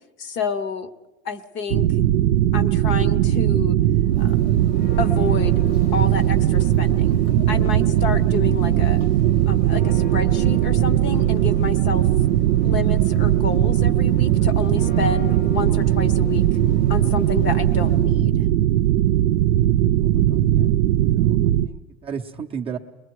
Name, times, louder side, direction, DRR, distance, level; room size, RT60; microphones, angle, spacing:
voice 1, 0.2-0.9 1.2-1.9 2.5-3.7 4.2-4.4 5.0-5.6 5.9-7.1 7.5-9.0 9.5-12.0 12.6-16.4 16.9-18.4, left 5 dB, 35° left, 14 dB, 0.9 m, -29 dB
sound 1, 1.7-21.7, right 12 dB, 90° right, 0.7 m, -19 dB
Church bell, 3.9-18.2, left 1 dB, 85° left, 3.4 m, -37 dB
voice 2, 20.0-20.7 21.1-22.8, right 7 dB, 15° right, 0 dB, 0.6 m, -35 dB
29.0 x 22.0 x 4.7 m, 1.1 s
supercardioid pair, 150°, 34 cm